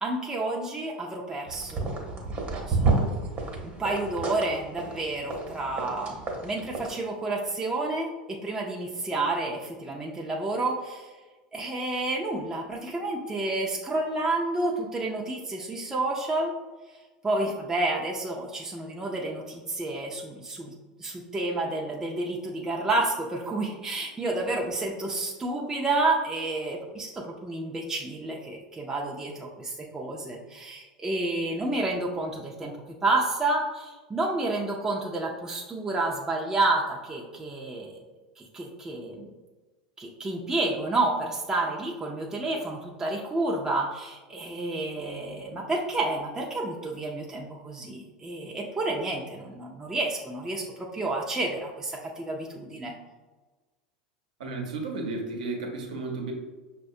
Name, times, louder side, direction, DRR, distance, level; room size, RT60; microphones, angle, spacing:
voice 1, 0.0-2.2 2.7-2.9 3.6-11.1 11.5-16.5 17.2-20.7 21.0-38.1 38.4-39.3 40.0-52.9, right 2 dB, 15° right, -2 dB, 0.5 m, -30 dB
sound 1, 1.5-6.9, right 3 dB, 35° right, 0.9 m, -30 dB
voice 2, 54.4-56.3, right 3 dB, 70° right, 1 dB, 0.8 m, -33 dB
6.0 x 2.2 x 2.6 m, 1.2 s
hypercardioid pair, 85°, 4 cm